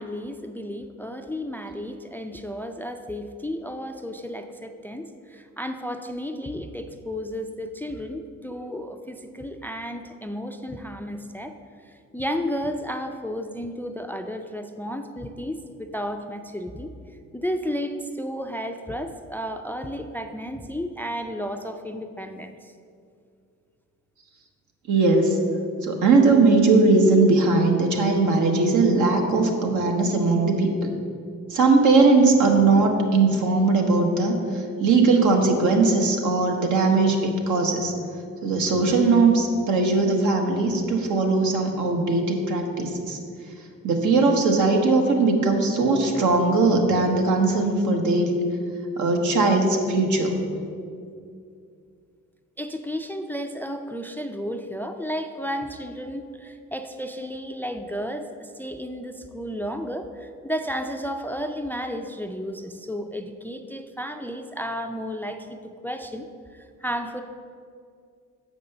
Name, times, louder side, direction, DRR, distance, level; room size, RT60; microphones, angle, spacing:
voice 1, 0.0-11.5 11.9-16.9 17.3-22.7 52.6-66.3 66.5-67.2, equal, 5° left, 7 dB, 0.3 m, -33 dB
voice 2, 24.9-25.4 25.8-30.9 31.5-37.9 38.4-43.2 43.8-48.3 49.0-50.4, right 3 dB, 75° right, 3 dB, 1.2 m, -20 dB
6.6 x 5.2 x 6.8 m, 2.4 s
cardioid pair, 90°, 30 cm